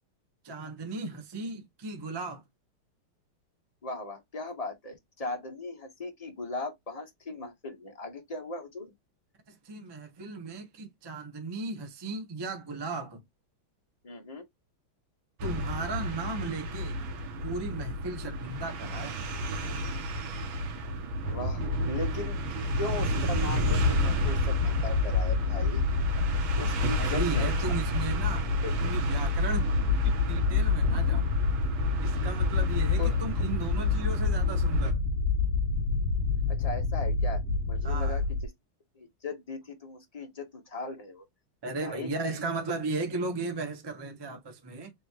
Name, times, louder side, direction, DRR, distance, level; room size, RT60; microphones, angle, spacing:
voice 1, 0.4-2.4 9.5-13.2 15.4-17.0 17.4-19.2 27.0-28.5 28.8-29.7 30.0-31.2 32.0-35.0 37.8-38.2 41.6-44.9, right 3 dB, 30° right, 0.4 m, -36 dB
voice 2, 3.8-8.9 14.0-14.4 21.3-22.4 22.8-25.8 26.6-27.7 28.6-29.1 33.0-33.2 36.5-37.4 37.7-38.5 38.9-41.2 41.8-42.1, left 2 dB, 25° left, 0.8 m, -38 dB
sound 1, 15.4-34.9, equal, 75° right, 1.8 m, -32 dB
sound 2, 23.2-38.5, left 4 dB, 55° left, 1.3 m, -28 dB
3.9 x 3.6 x 2.9 m
omnidirectional pair, 2.3 m